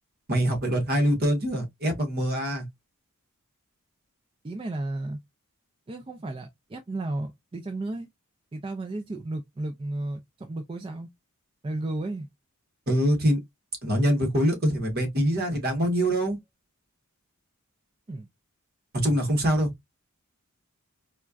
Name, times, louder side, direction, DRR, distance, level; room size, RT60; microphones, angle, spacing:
voice 1, 0.3-2.6 12.9-13.4 13.8-16.4 19.0-19.7, equal, 45° right, 1.2 m, -24 dB
voice 2, 4.4-5.2 5.9-8.1 8.5-11.1 11.6-12.3 18.1-18.3, right 2 dB, 25° right, 0.3 m, -33 dB
4.2 x 2.3 x 2.4 m
head